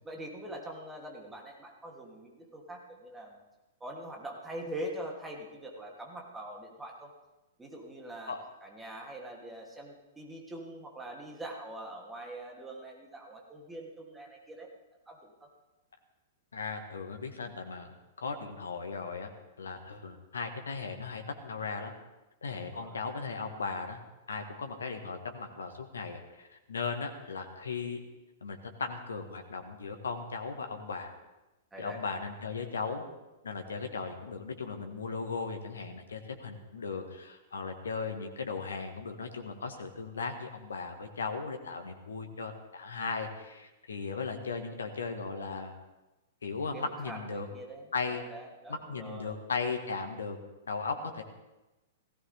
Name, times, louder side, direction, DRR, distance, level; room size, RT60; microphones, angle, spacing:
voice 1, 0.0-3.4 3.8-7.1 7.6-14.7 15.1-15.5 22.5-23.0 31.7-32.0 46.7-49.4, right 1 dB, 10° right, 0 dB, 2.9 m, -43 dB
voice 2, 16.5-17.9 18.2-19.3 19.6-21.9 22.4-24.0 24.3-28.0 28.4-31.1 31.8-33.0 33.4-45.7 46.4-47.5 47.9-48.2 48.7-50.4 50.7-51.2, left 4 dB, 70° left, 5 dB, 1.7 m, -37 dB
18.0 x 16.0 x 3.6 m, 1.0 s
figure-of-eight pair, 105°, 0 cm